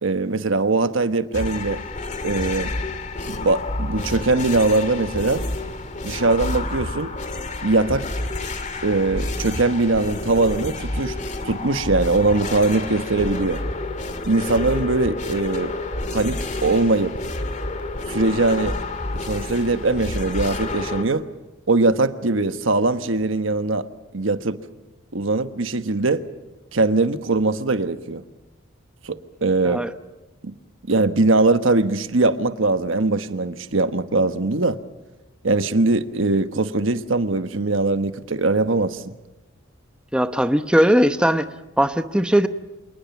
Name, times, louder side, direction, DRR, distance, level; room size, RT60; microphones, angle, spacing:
voice 1, 0.0-1.8 2.2-2.7 3.3-5.4 6.0-7.1 7.6-8.0 8.8-11.1 11.4-13.6 14.3-15.7 16.1-17.1 18.1-18.8 19.2-21.2 21.7-23.9 24.1-24.6 25.1-26.2 26.7-28.2 29.0-29.8 30.4-30.5 30.9-34.8 35.4-39.1, right 3 dB, 75° right, 10 dB, 1.2 m, -21 dB
sound 1, 1.3-21.0, left 2 dB, 35° left, 2.3 m, -29 dB
voice 2, 40.1-41.5 41.8-42.5, equal, 5° right, 9 dB, 0.8 m, -18 dB
27.5 x 20.0 x 7.2 m, 1.1 s
head